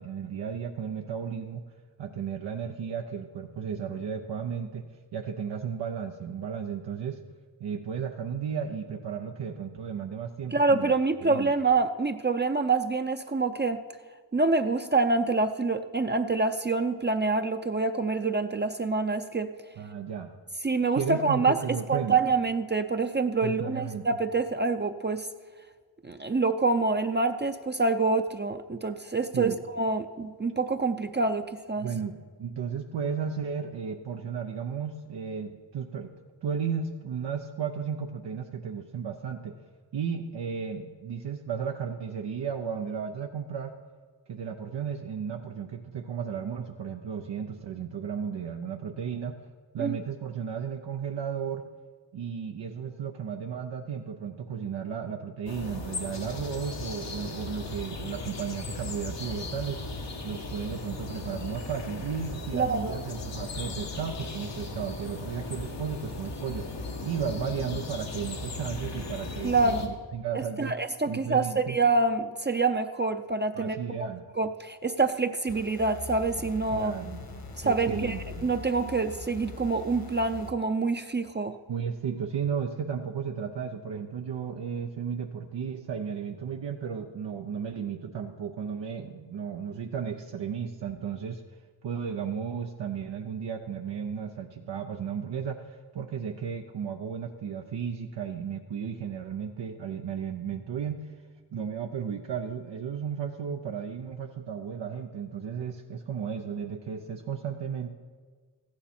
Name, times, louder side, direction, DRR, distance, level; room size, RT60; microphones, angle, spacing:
voice 1, 0.0-1.6 2.0-4.8 5.1-7.2 7.6-11.0 11.2-11.5 19.8-20.4 21.0-22.2 23.4-24.1 29.3-29.6 31.8-36.1 36.4-39.6 39.9-43.8 44.3-49.4 49.7-51.6 52.1-59.9 60.2-66.7 67.0-70.8 71.1-71.8 73.5-74.2 76.7-77.3 77.6-78.5 81.7-91.4 91.8-101.1 101.5-107.9, right 7 dB, 85° right, 2 dB, 0.7 m, -34 dB
voice 2, 10.5-13.8 14.3-19.5 20.6-21.6 21.9-25.3 26.0-31.9 49.8-50.0 62.5-63.0 69.4-69.9 70.3-73.8 74.4-76.9 77.6-78.1 78.4-81.6, right 3 dB, 25° right, 7 dB, 0.6 m, -26 dB
sound 1, 55.5-69.9, left 3 dB, 90° left, 1.5 m, -37 dB
sound 2, 75.5-80.5, left 3 dB, 60° left, 1.4 m, -42 dB
14.5 x 9.8 x 4.3 m, 1.5 s
cardioid pair, 50°, 42 cm